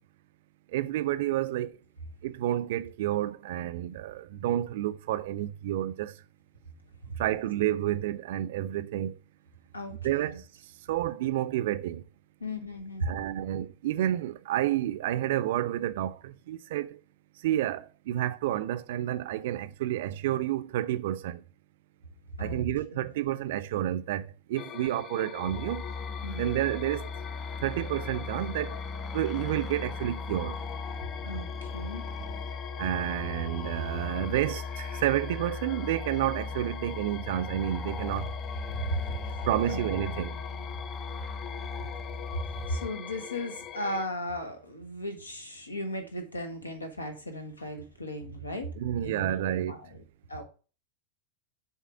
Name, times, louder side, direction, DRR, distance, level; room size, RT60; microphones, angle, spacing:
voice 1, 0.7-1.8 2.2-6.2 7.2-9.1 10.0-10.4 10.9-12.0 13.0-17.0 17.4-21.4 22.4-25.8 26.3-27.1 27.6-28.8 29.1-30.6 32.8-38.3 39.5-40.4 48.8-49.8, right 13 dB, 55° right, 0.5 m, -30 dB
voice 2, 9.7-10.4 12.4-13.5 22.4-22.6 22.9-23.1 26.2-26.5 31.2-32.0 38.8-39.4 39.7-40.6 42.3-48.7 49.0-50.0 50.3-50.4, equal, 80° left, 1.3 m, -36 dB
sound 1, 24.5-44.1, left 10 dB, 30° left, 0.4 m, -43 dB
sound 2, 25.5-42.9, left 4 dB, 15° left, 1.1 m, -38 dB
7.2 x 3.6 x 6.0 m
figure-of-eight pair, 90°, 0 cm